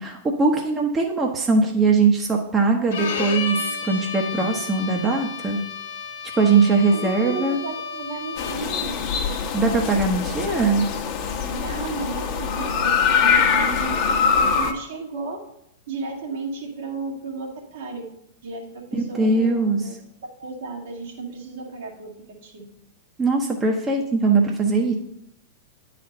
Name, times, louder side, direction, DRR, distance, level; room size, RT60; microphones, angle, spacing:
voice 1, 0.0-5.6 6.4-7.6 9.5-10.8 18.9-19.8 23.2-24.9, right 4 dB, 20° right, 1 dB, 1.0 m, -21 dB
Bowed string instrument, 2.9-8.8, left 5 dB, 60° left, 1.2 m, -32 dB
voice 2, 6.9-9.0 11.5-15.4 15.9-18.1 18.4-18.7 18.9-19.9 20.4-22.1 22.4-22.6, right 4 dB, 65° right, -1 dB, 2.2 m, -33 dB
sound 1, 8.4-14.7, left 6 dB, 40° left, 1.2 m, -23 dB
9.5 x 4.3 x 5.4 m, 0.75 s
hypercardioid pair, 100°, 0 cm